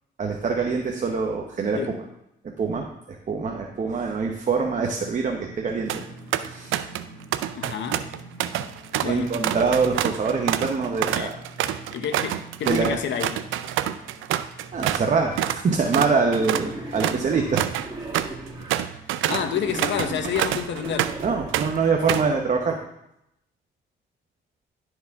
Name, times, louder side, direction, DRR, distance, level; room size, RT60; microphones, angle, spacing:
voice 1, 0.2-2.0 2.6-5.9 6.4-6.8 9.0-11.4 12.7-13.0 14.7-17.6 21.2-22.8, right 4 dB, 40° right, 0.9 m, -24 dB
sound 1, 4.6-19.0, right 2 dB, 5° left, 3.3 m, -46 dB
sound 2, 5.7-6.0 6.3-7.1 7.3-15.1 15.4-15.6 15.9-21.3 21.5-22.3, right 12 dB, 85° right, 0.4 m, -27 dB
voice 2, 7.5-8.2 9.0-9.4 11.1-11.3 11.9-13.4 19.3-21.2, left 8 dB, 70° left, 0.8 m, -29 dB
Wild animals, 16.3-18.8 19.3-21.8, right 1 dB, 15° right, 2.2 m, -37 dB
11.0 x 4.7 x 3.5 m
cardioid pair, 90°, 20 cm